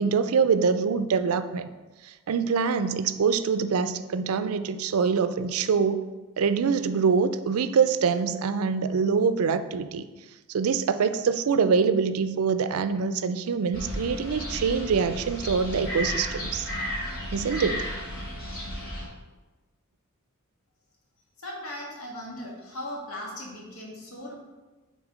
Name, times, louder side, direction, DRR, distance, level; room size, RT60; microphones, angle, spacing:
voice 1, 0.0-1.7 2.3-6.0 6.4-10.0 10.5-16.7 17.3-17.9, right 5 dB, 85° right, 11 dB, 0.4 m, -24 dB
sound 1, 13.7-19.0, left 1 dB, 45° left, 2.1 m, -33 dB
voice 2, 21.4-24.4, left 1 dB, 85° left, -2 dB, 1.7 m, -38 dB
6.3 x 4.0 x 5.0 m, 1.2 s
head